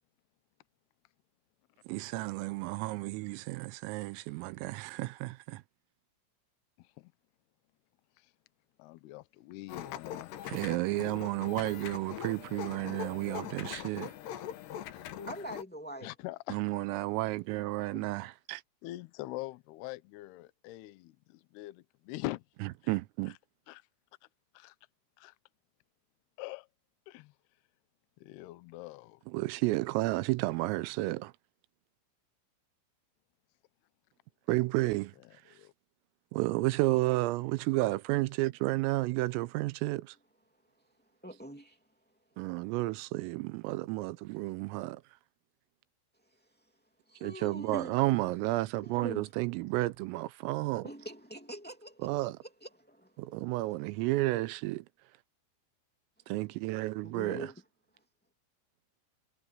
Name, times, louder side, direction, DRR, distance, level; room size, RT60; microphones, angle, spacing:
voice 1, 1.9-5.6 10.5-14.1 16.5-18.6 22.9-23.4 29.3-31.3 34.5-35.1 35.5-35.6 36.3-40.2 42.4-45.0 47.2-50.9 52.0-52.4 53.2-54.9 56.3-57.5, right 20 dB, 90° right, 3.4 m, -32 dB
voice 2, 6.8-7.1 8.2-8.3 8.8-10.3 16.0-16.6 17.9-18.1 18.8-22.4 22.8-22.9 23.7-23.8 24.5-24.8 25.2-25.3 26.4-26.7 27.1-27.3 28.2-29.2 35.5-35.7, left 17 dB, 85° left, 2.3 m, -43 dB
sound 1, 9.7-15.6, left 10 dB, 65° left, 3.1 m, -42 dB
voice 3, 15.3-16.1 41.2-41.8 47.1-48.0 48.8-49.3 50.8-52.3 52.6-53.2 57.0-57.5, equal, 10° left, 0.5 m, -43 dB
omnidirectional pair, 5.9 m